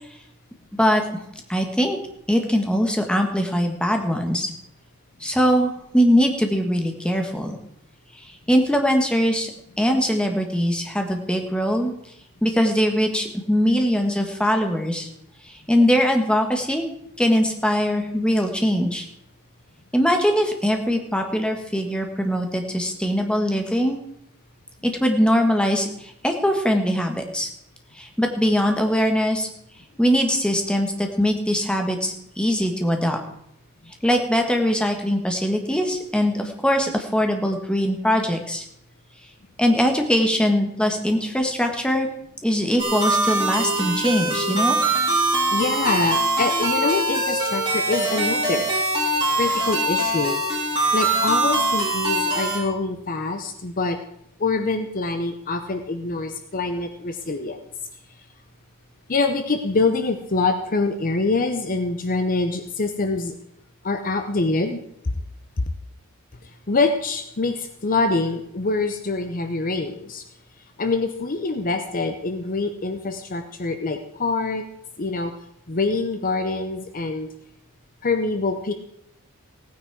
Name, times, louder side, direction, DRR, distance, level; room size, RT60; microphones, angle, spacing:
voice 1, 0.7-1.0 1.5-2.0 2.3-4.5 5.2-7.6 8.5-9.5 9.8-11.9 12.4-15.1 15.7-16.9 17.2-19.1 19.9-24.0 24.8-27.5 28.0-29.5 30.0-33.2 34.0-38.6 39.6-42.1 42.4-44.8, equal, 5° left, 3 dB, 1.4 m, -21 dB
sound 1, 42.8-52.6, right 1 dB, 20° right, 3.7 m, -22 dB
voice 2, 45.5-48.7 49.4-50.4 50.9-54.0 54.4-57.6 59.1-63.3 63.8-64.8 65.6-65.7 66.4-70.2 70.8-74.6 75.0-75.3 75.7-77.3 78.0-78.7, left 3 dB, 40° left, 7 dB, 0.7 m, -25 dB
16.5 x 9.4 x 4.7 m, 0.76 s
head